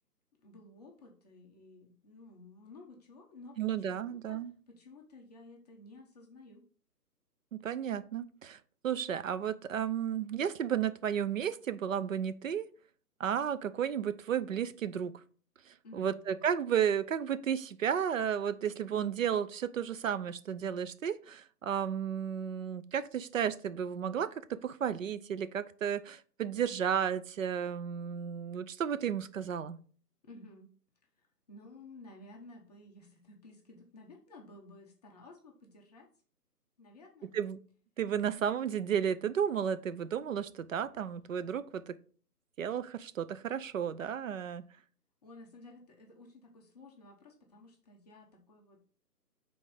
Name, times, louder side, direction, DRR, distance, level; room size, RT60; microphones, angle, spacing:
voice 1, 0.4-6.6 15.8-16.2 30.2-30.7 31.0-36.1 36.8-37.3 45.2-48.9, left 2 dB, 25° left, 0 dB, 0.9 m, -54 dB
voice 2, 3.6-4.5 7.5-8.6 8.8-12.7 13.2-15.1 15.7-29.8 37.3-37.6 38.0-42.0 42.6-44.6, right 8 dB, 55° right, 13 dB, 0.6 m, -33 dB
5.7 x 3.9 x 4.8 m, 0.42 s
hypercardioid pair, 150°, 48 cm